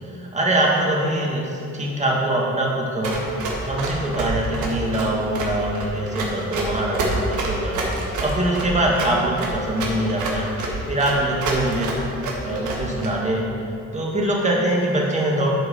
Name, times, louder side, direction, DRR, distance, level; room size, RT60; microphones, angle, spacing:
voice 1, 0.0-3.2 3.6-10.5 10.9-12.0 12.4-13.4 13.9-15.5, right 1 dB, 25° right, -3 dB, 2.0 m, -23 dB
Run, 3.0-13.1, right 2 dB, 75° right, 1.7 m, -27 dB
11.0 x 4.6 x 5.5 m, 2.7 s
cardioid pair, 90°, 30 cm